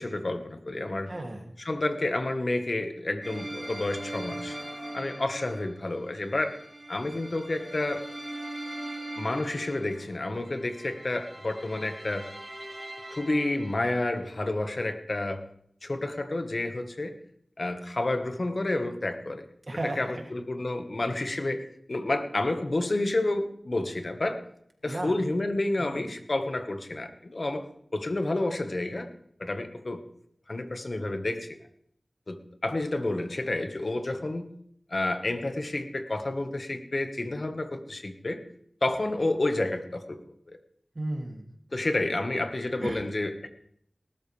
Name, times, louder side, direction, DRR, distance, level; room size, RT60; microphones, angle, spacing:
voice 1, 0.0-1.1 1.6-4.6 4.9-6.6 6.9-8.0 9.2-12.3 13.1-15.4 15.8-17.2 17.6-19.5 20.0-21.6 21.9-24.4 24.8-27.6 27.9-29.1 29.4-30.0 30.5-31.6 32.3-34.5 34.9-38.4 38.8-40.2 40.5-40.6 41.7-43.5, left 2 dB, 55° left, 7 dB, 1.6 m, -30 dB
voice 2, 1.1-1.5 19.7-20.3 24.9-25.1 25.8-26.1 40.9-41.5 42.8-43.0, right 1 dB, 50° right, 1 dB, 2.9 m, -34 dB
sound 1, 3.2-14.2, right 1 dB, 30° right, 4.4 m, -41 dB
19.0 x 12.5 x 3.5 m, 0.68 s
wide cardioid pair, 45°, 0 cm